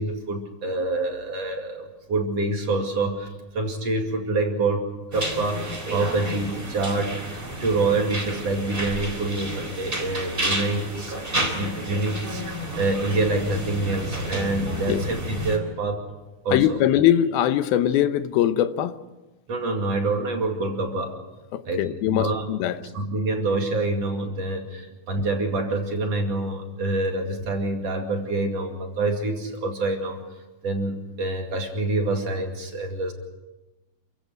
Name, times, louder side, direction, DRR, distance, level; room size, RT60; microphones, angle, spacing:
voice 1, 0.0-3.3 3.5-4.8 5.1-11.1 11.5-16.0 16.4-16.8 19.5-21.1 21.6-30.2 30.6-33.1, right 2 dB, 45° right, 3 dB, 3.2 m, -26 dB
sound 1, 5.1-15.6, right 1 dB, 15° right, 3.3 m, -31 dB
voice 2, 16.5-18.9 21.5-22.8, left 11 dB, 85° left, 11 dB, 2.8 m, -21 dB
27.5 x 16.0 x 8.0 m, 1.1 s
omnidirectional pair, 4.3 m